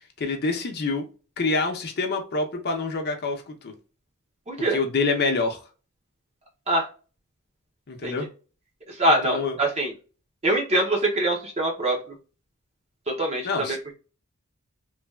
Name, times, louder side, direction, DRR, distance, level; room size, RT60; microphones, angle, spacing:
voice 1, 0.2-1.1 1.4-3.7 4.7-5.6 7.9-8.3 9.2-9.6 13.4-13.9, left 3 dB, 45° left, 0.6 m, -26 dB
voice 2, 4.5-4.8 6.7-6.9 8.0-8.1 8.9-9.9 10.4-12.0 13.1-13.9, right 1 dB, 30° right, 0.6 m, -24 dB
3.2 x 2.2 x 2.2 m
head